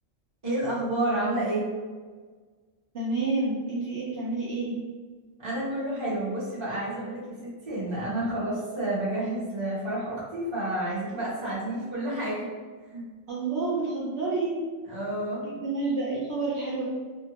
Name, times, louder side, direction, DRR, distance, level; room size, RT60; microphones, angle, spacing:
voice 1, 0.4-1.7 5.4-12.5 12.9-13.0 14.9-15.4, right 1 dB, 25° right, -9 dB, 1.0 m, -30 dB
voice 2, 2.9-4.8 13.3-14.6 15.4-16.8, right 3 dB, 60° right, -8 dB, 0.9 m, -29 dB
2.8 x 2.1 x 2.9 m, 1.5 s
omnidirectional pair, 1.3 m